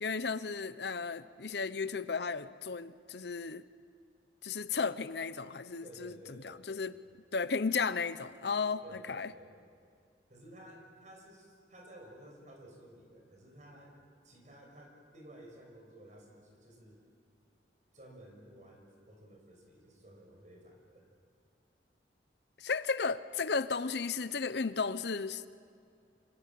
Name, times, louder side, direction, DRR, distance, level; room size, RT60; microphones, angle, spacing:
voice 1, 0.0-3.6 4.4-6.1 6.4-6.9 7.3-9.3 22.6-25.5, left 5 dB, 65° left, 14 dB, 0.7 m, -34 dB
voice 2, 5.8-6.7 8.8-9.5 10.3-14.0 14.2-17.0 17.9-21.1, right 1 dB, 40° right, 2 dB, 6.4 m, -54 dB
27.0 x 26.0 x 7.7 m, 2.4 s
head